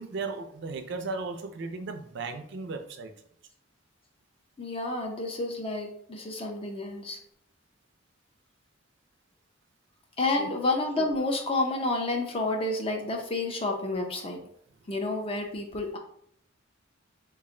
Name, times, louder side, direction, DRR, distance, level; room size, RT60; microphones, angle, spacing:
voice 1, 0.0-3.1 10.4-10.5, right 3 dB, 60° right, 6 dB, 0.4 m, -36 dB
voice 2, 4.6-7.2 10.2-14.4 14.9-16.0, left 2 dB, 30° left, 2 dB, 0.6 m, -30 dB
3.1 x 2.5 x 3.7 m, 0.65 s
head